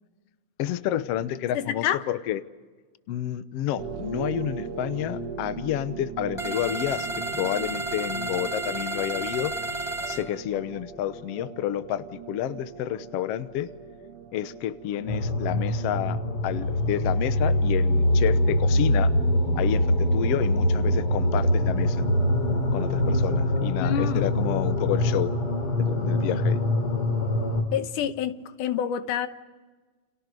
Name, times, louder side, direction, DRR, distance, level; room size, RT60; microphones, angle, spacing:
voice 1, 0.6-2.4 3.1-7.1 7.3-9.5 10.1-13.7 14.3-19.1 19.5-22.0 22.7-25.3 25.8-26.6, left 12 dB, 65° left, 13 dB, 1.7 m, -30 dB
voice 2, 1.5-2.0 23.8-24.3 27.7-29.3, left 10 dB, 90° left, 10 dB, 2.6 m, -28 dB
sound 1, 3.8-16.9, right 6 dB, 75° right, 3.1 m, -39 dB
sound 2, 6.4-10.2, right 2 dB, 10° left, 2.3 m, -32 dB
sound 3, 15.1-27.6, left 1 dB, 45° left, 4.2 m, -24 dB
29.5 x 28.5 x 5.3 m, 1.3 s
omnidirectional pair, 3.5 m